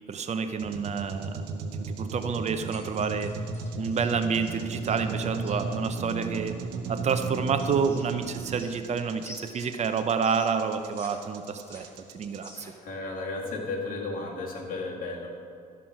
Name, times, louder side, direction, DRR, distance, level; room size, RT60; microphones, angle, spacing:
voice 1, 0.1-1.4 1.9-3.3 3.7-6.5 6.9-11.9 12.1-12.7, right 6 dB, 40° right, 8 dB, 0.7 m, -29 dB
sound 1, 0.6-12.5, right 3 dB, 90° right, 1.0 m, -35 dB
sound 2, 2.7-5.6 7.1-8.9 9.2-11.1 11.4-12.9, left 1 dB, 15° left, 2.3 m, -49 dB
voice 2, 12.8-15.3, left 3 dB, 55° left, -1 dB, 2.2 m, -34 dB
12.5 x 6.0 x 5.9 m, 2.5 s
cardioid pair, 110°, 17 cm